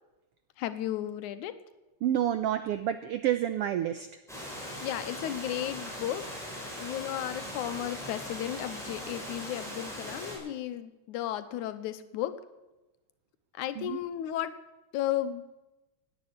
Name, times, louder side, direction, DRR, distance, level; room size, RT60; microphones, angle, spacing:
voice 1, 0.6-1.6 4.8-12.4 13.5-14.6 14.9-15.4, left 12 dB, 90° left, 11 dB, 2.3 m, -34 dB
voice 2, 2.0-4.1 13.8-14.0, right 11 dB, 85° right, 11 dB, 1.3 m, -29 dB
Water, 4.3-10.3, equal, ahead, 5.7 m, -40 dB
17.5 x 9.5 x 8.6 m, 1.1 s
omnidirectional pair, 3.4 m